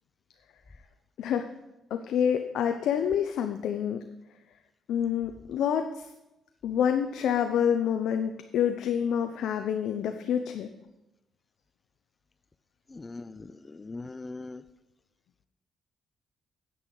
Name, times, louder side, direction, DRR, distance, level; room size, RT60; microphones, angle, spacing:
voice 1, 1.2-1.5 1.9-4.0 4.9-6.1 6.6-10.7, left 8 dB, 75° left, 7 dB, 0.5 m, -27 dB
voice 2, 12.9-14.6, left 3 dB, 25° left, 14 dB, 0.4 m, -41 dB
9.6 x 8.4 x 3.9 m, 0.96 s
cardioid pair, 90°, 0 cm